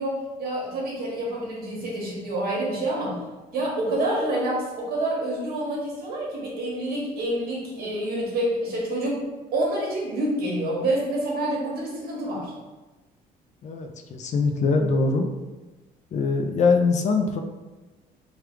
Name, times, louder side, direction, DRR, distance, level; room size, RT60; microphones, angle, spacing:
voice 1, 0.0-3.2 3.5-9.2 9.5-12.5, right 1 dB, 65° right, -3 dB, 1.2 m, -27 dB
voice 2, 13.6-15.3 16.1-17.4, left 4 dB, 45° left, 5 dB, 0.4 m, -22 dB
3.2 x 2.4 x 3.2 m, 1.2 s
cardioid pair, 110°, 17 cm